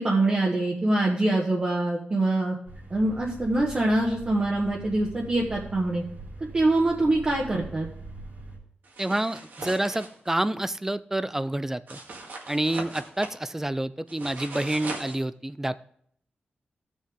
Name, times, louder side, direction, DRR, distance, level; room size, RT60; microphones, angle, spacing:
voice 1, 0.0-2.5 2.9-6.0 6.4-7.9, right 2 dB, 35° right, -3 dB, 1.3 m, -24 dB
sound 1, 2.7-8.6, right 2 dB, 55° right, 3.1 m, -43 dB
sound 2, 8.8-10.4 11.9-13.4 14.1-15.2, right 3 dB, 70° right, 2.0 m, -39 dB
voice 2, 9.0-12.0 12.5-15.9, right 1 dB, 10° right, 15 dB, 0.3 m, -28 dB
15.5 x 6.4 x 3.6 m, 0.65 s
wide cardioid pair, 140°, 3 cm